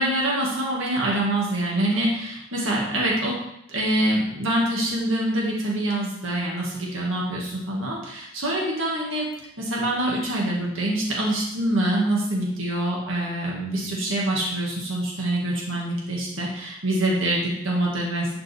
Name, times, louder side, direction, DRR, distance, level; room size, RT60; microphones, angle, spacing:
voice 1, 0.0-3.4 3.7-9.3 9.6-18.4, right 1 dB, 70° right, -3 dB, 2.0 m, -25 dB
11.5 x 5.8 x 3.5 m, 0.77 s
head